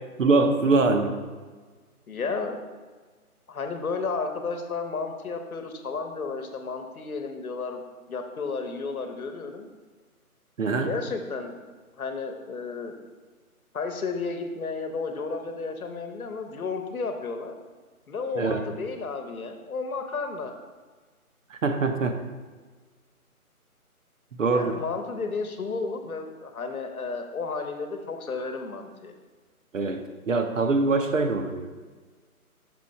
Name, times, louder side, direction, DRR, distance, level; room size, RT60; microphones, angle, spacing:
voice 1, 0.2-1.2 10.6-10.9 18.4-18.7 21.5-22.2 24.4-24.7 29.7-31.7, right 3 dB, 60° right, 6 dB, 0.7 m, -23 dB
voice 2, 2.1-2.7 3.5-7.8 8.1-9.7 10.8-11.6 12.0-13.0 13.7-17.6 18.1-20.5 24.5-29.1, left 4 dB, 70° left, 6 dB, 1.0 m, -32 dB
6.1 x 4.5 x 4.2 m, 1.4 s
figure-of-eight pair, 165°, 45 cm